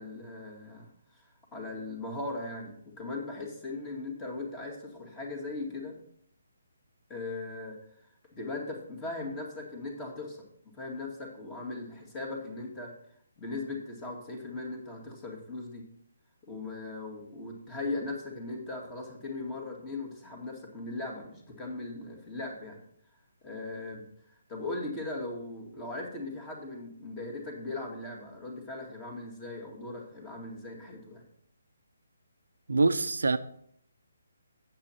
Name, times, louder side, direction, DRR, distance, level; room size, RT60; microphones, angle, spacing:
voice 1, 0.0-6.0 7.1-8.1 8.4-10.4 10.7-12.9 13.4-15.9 16.5-22.8 23.4-31.2, left 2 dB, 15° left, 0 dB, 2.1 m, -39 dB
voice 2, 32.7-33.4, right 3 dB, 70° right, 13 dB, 0.6 m, -24 dB
8.6 x 7.6 x 4.3 m, 0.69 s
figure-of-eight pair, 140°, 0 cm